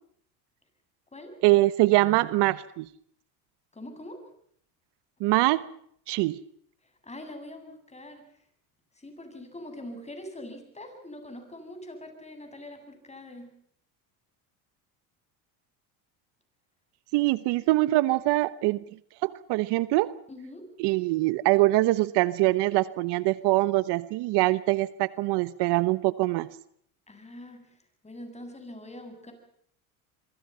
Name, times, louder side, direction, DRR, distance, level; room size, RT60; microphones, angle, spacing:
voice 1, 1.4-2.9 5.2-5.6 6.1-6.4 17.1-18.8 19.2-20.1 20.8-26.5, right 19 dB, 65° right, 16 dB, 1.2 m, -23 dB
voice 2, 3.7-4.2 7.0-8.2 9.0-13.5 20.3-20.7 27.1-27.7 28.0-29.3, left 1 dB, 15° left, 6 dB, 8.0 m, -43 dB
27.0 x 23.5 x 5.7 m, 0.64 s
supercardioid pair, 100°, 44 cm